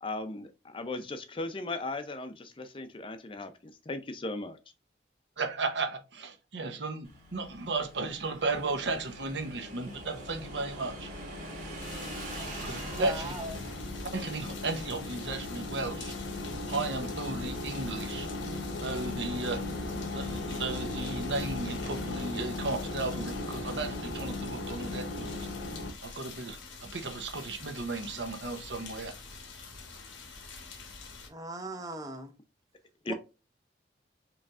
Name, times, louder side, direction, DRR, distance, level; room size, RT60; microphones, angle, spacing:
voice 1, 0.0-4.6 33.0-33.1, left 2 dB, 30° left, 0.4 m, -37 dB
voice 2, 5.4-11.1 12.6-13.3 14.1-16.1 16.7-18.3 18.8-19.6 20.1-25.3 26.0-29.1, right 3 dB, 70° right, 0.8 m, -35 dB
Motorcycle / Engine, 7.0-14.1, right 1 dB, 40° right, 2.0 m, -44 dB
sound 1, 8.4-25.9, left 2 dB, 70° left, 0.9 m, -38 dB
sound 2, 11.8-31.3, left 4 dB, 90° left, 1.1 m, -46 dB
voice 3, 12.8-13.6 31.3-32.3 33.1-33.2, right 2 dB, 20° right, 0.6 m, -38 dB
4.9 x 3.1 x 2.4 m
head